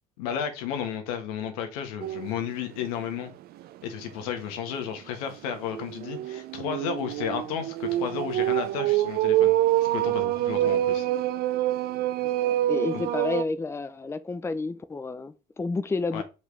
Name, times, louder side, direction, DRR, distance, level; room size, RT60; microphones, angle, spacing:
voice 1, 0.2-3.3 3.8-9.5 9.8-11.1 12.9-13.0 16.1-16.2, left 8 dB, 80° left, 1.7 m, -33 dB
sound 1, 2.0-2.4 2.8-2.9 3.3-3.4 5.5-13.4, right 14 dB, 55° right, 0.6 m, -26 dB
voice 2, 12.4-16.2, left 3 dB, 15° left, 0.7 m, -30 dB
5.2 x 5.0 x 4.8 m
supercardioid pair, 90°, 18 cm